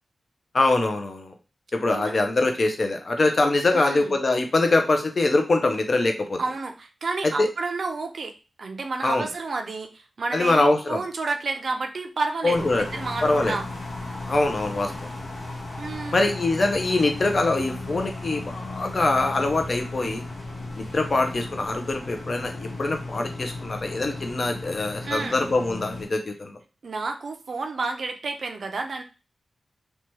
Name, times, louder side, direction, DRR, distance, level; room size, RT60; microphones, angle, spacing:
voice 1, 0.5-1.3 1.7-6.4 7.2-7.5 9.0-9.3 10.3-11.0 12.4-12.9 13.2-13.6 14.3-15.1 16.1-20.2 20.8-26.6, left 2 dB, 40° left, 5 dB, 0.5 m, -23 dB
voice 2, 3.7-4.1 6.4-13.6 15.8-16.2 25.0-25.4 26.8-29.0, right 3 dB, 60° right, 5 dB, 0.4 m, -30 dB
sound 1, 12.5-26.1, left 2 dB, 80° left, 1.0 m, -35 dB
2.8 x 2.2 x 3.0 m, 0.32 s
wide cardioid pair, 145°, 0 cm